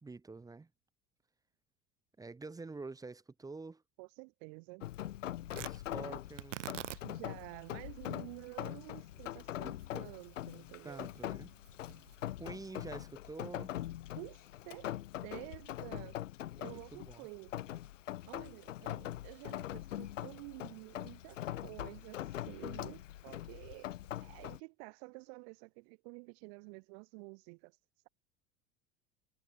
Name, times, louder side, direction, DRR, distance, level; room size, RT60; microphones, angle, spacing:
voice 1, 0.0-0.7 2.2-3.8 5.7-6.7 10.8-11.5 12.4-13.7 16.6-17.3, right 3 dB, 10° right, 0.9 m, -47 dB
voice 2, 4.0-4.9 5.9-6.1 7.0-11.1 14.1-14.9 15.2-16.2 16.6-17.5 18.2-27.8, right 35 dB, 50° right, 1.4 m, -50 dB
Rain, 4.8-24.6, left 13 dB, 75° left, 0.6 m, -43 dB
Tearing, 5.5-13.8, right 13 dB, 70° right, 0.7 m, -50 dB
figure-of-eight pair, 70°, 39 cm